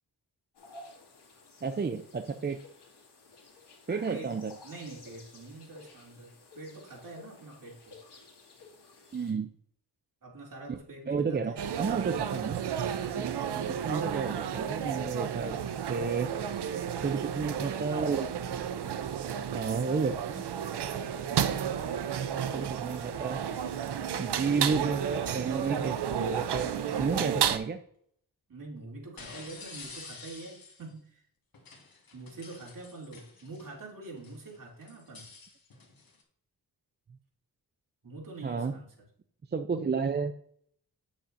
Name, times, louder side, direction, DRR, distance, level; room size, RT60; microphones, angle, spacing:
sound 1, 0.5-9.3, left 3 dB, 85° left, 2.1 m, -53 dB
voice 1, 1.6-2.6 3.9-4.5 9.1-9.5 10.7-10.8 11.1-12.6 13.2-15.6 15.9-16.3 17.0-18.3 19.5-20.4 21.3-21.4 22.5-23.4 24.2-26.7 27.0-27.8 38.4-38.7 39.5-40.3, right 5 dB, 25° right, 7 dB, 0.5 m, -31 dB
voice 2, 4.6-8.0 10.2-11.6 13.0-13.4 28.5-31.3 32.1-35.3 38.0-38.9, right 3 dB, 55° right, -2 dB, 2.8 m, -45 dB
sound 2, 11.6-27.6, right 8 dB, 85° right, 0.6 m, -32 dB
sound 3, 27.1-27.3 29.2-30.9 31.5-33.8 34.2-36.2, left 4 dB, 60° left, 1.7 m, -49 dB
8.7 x 7.1 x 2.6 m, 0.64 s
wide cardioid pair, 80°, 39 cm